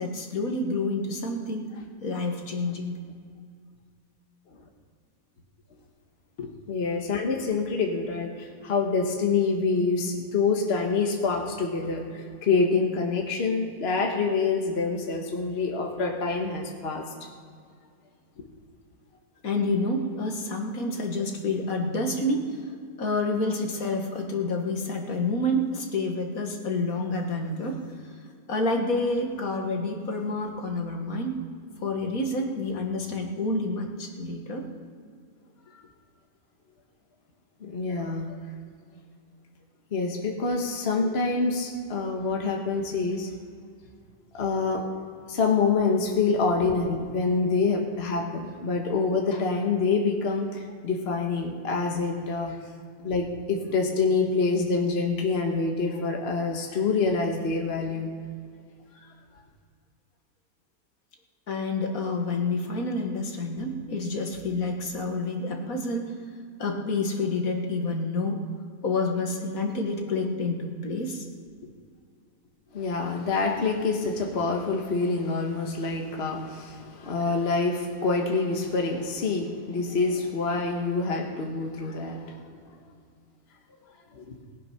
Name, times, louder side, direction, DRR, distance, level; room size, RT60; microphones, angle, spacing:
voice 1, 0.0-1.7 2.0-3.0 6.4-6.5 18.4-18.5 19.4-22.5 23.0-27.8 28.5-31.4 31.8-34.6 61.5-66.1 66.6-68.4 68.8-71.2, left 2 dB, 70° left, 2 dB, 2.0 m, -28 dB
voice 2, 6.7-17.0 35.7-35.8 37.6-38.4 39.9-43.3 44.3-44.8 45.3-52.6 53.0-58.1 72.7-82.4 84.1-84.4, left 4 dB, 45° left, 2 dB, 1.5 m, -26 dB
19.0 x 8.8 x 5.7 m, 2.2 s
omnidirectional pair, 1.6 m